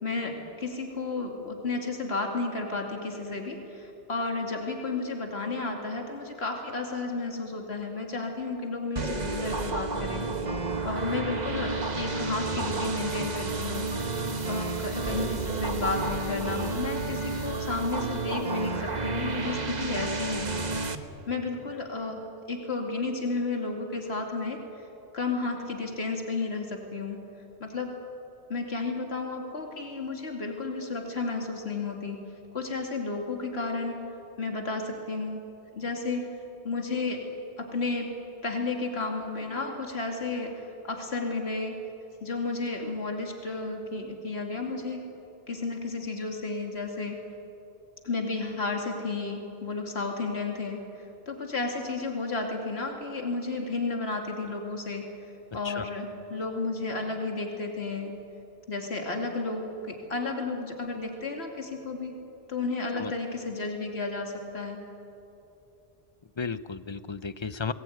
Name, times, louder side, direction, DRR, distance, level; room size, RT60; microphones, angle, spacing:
voice 1, 0.0-10.3 10.8-13.9 14.5-20.5 21.3-22.2 22.5-24.6 25.1-27.2 27.6-27.9 28.5-32.2 32.5-34.0 34.4-35.4 35.7-36.3 36.6-37.2 37.6-38.1 38.4-41.7 42.2-45.0 45.5-47.2 48.0-55.1 55.5-58.1 58.7-62.2 62.5-64.8, left 3 dB, 70° left, 2 dB, 2.8 m, -32 dB
sound 1, 9.0-21.0, right 3 dB, 40° right, 1.4 m, -31 dB
voice 2, 66.4-67.7, left 5 dB, 30° left, 13 dB, 0.7 m, -34 dB
29.5 x 20.0 x 9.3 m, 3.0 s
omnidirectional pair, 1.1 m